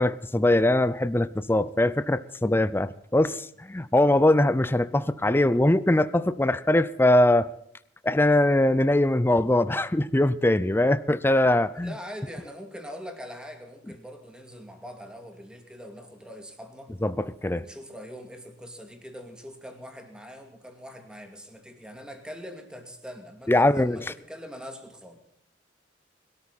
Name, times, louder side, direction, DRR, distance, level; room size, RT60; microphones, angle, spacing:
voice 1, 0.0-7.5 8.0-11.9 17.0-17.7 23.5-24.0, left 1 dB, 10° left, 15 dB, 0.5 m, -22 dB
voice 2, 11.3-16.9 17.5-25.2, equal, 5° right, 4 dB, 2.4 m, -43 dB
22.0 x 13.0 x 4.1 m, 0.69 s
head